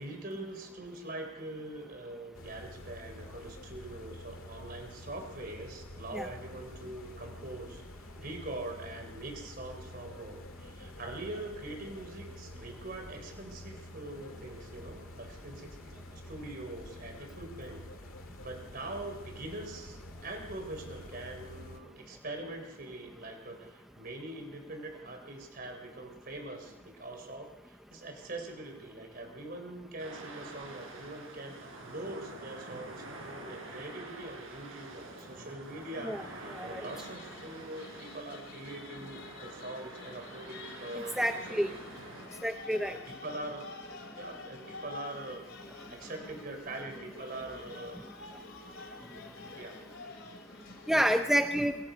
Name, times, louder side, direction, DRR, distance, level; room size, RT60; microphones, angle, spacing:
voice 1, 0.0-17.9 18.4-41.8 42.9-43.7 44.1-45.4 45.9-48.0 49.5-49.8 50.9-51.2, right 2 dB, 45° right, 4 dB, 3.8 m, -43 dB
sound 1, 2.3-21.8, left 1 dB, 85° left, 2.1 m, -48 dB
sound 2, 30.0-42.3, right 2 dB, 75° right, 5.9 m, -47 dB
sound 3, 36.8-51.2, left 3 dB, 60° left, 3.0 m, -49 dB
voice 2, 41.2-41.7 42.4-43.0 50.9-51.8, equal, ahead, 5 dB, 0.6 m, -28 dB
27.5 x 23.0 x 5.2 m, 1.1 s
head